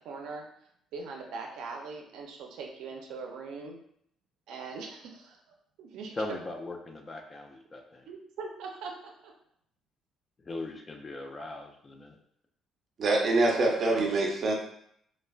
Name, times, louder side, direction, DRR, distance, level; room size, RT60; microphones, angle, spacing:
voice 1, 0.0-0.5 0.9-3.8 4.5-5.4 5.8-6.2 8.1-9.3, right 4 dB, 85° right, 1 dB, 0.4 m, -41 dB
voice 2, 6.2-8.1 10.4-12.2, left 2 dB, 25° left, 3 dB, 0.4 m, -39 dB
voice 3, 13.0-14.5, right 2 dB, 45° right, 0 dB, 0.6 m, -25 dB
3.1 x 2.0 x 2.3 m, 0.70 s
cardioid pair, 115°, 0 cm